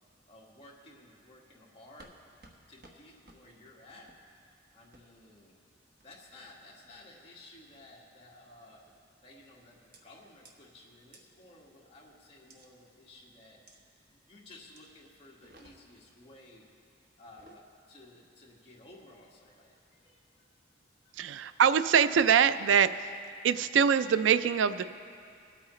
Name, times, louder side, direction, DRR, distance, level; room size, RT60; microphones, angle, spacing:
voice 1, 0.3-2.2 2.7-4.1 4.7-5.6 6.0-8.9 9.2-13.6 14.1-16.7 17.2-20.5 21.0-21.5, left 2 dB, 30° left, -4 dB, 1.8 m, -55 dB
sound 1, 2.0-2.2 2.4-2.6 2.8-3.0 3.3-3.4 4.1-4.2 4.9-5.0 6.0-6.3 6.9-7.3 7.7-8.0 8.8-9.1 9.9-10.0 10.4-10.5 11.1-11.2 12.5-12.7 13.7-13.8 14.8-14.9 15.3-16.0 17.2-17.6, right 2 dB, 50° right, 1.1 m, -57 dB
voice 2, 21.2-22.9 23.4-24.8, right 7 dB, 85° right, 14 dB, 0.4 m, -23 dB
22.5 x 8.5 x 3.2 m, 2.4 s
head